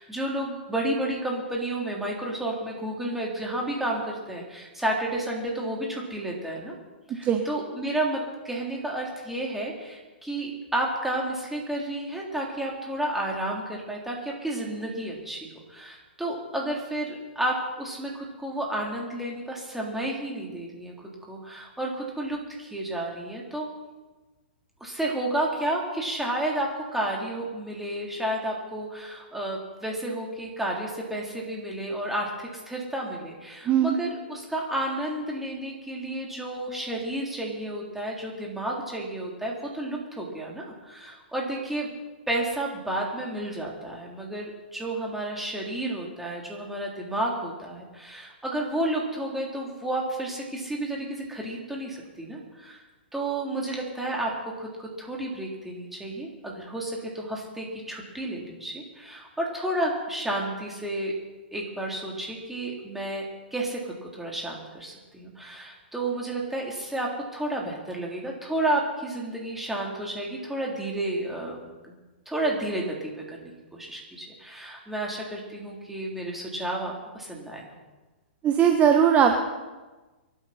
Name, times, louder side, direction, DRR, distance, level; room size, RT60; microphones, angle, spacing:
voice 1, 0.0-6.7 7.1-20.9 21.3-23.7 24.8-41.9 42.3-52.8 53.1-61.2 61.5-72.0 72.3-77.8, right 1 dB, 5° right, -2 dB, 3.6 m, -31 dB
voice 2, 33.7-34.0 78.4-79.4, right 8 dB, 25° right, 4 dB, 1.3 m, -19 dB
24.5 x 12.0 x 4.4 m, 1.2 s
hypercardioid pair, 125°, 6 cm